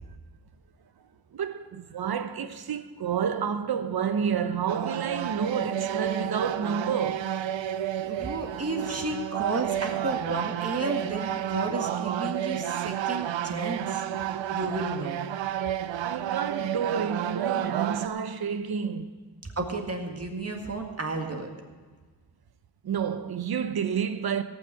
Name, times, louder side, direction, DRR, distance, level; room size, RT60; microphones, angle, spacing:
voice 1, 1.3-7.3 16.0-19.1 22.8-24.4, right 7 dB, 55° right, 0.8 m, -29 dB
sound 1, 4.7-18.1, right 11 dB, 90° right, 0.6 m, -31 dB
voice 2, 8.0-14.0 14.5-15.2 19.6-21.5, right 3 dB, 35° right, 2.0 m, -32 dB
17.5 x 6.2 x 7.8 m
cardioid pair, 90°, 44 cm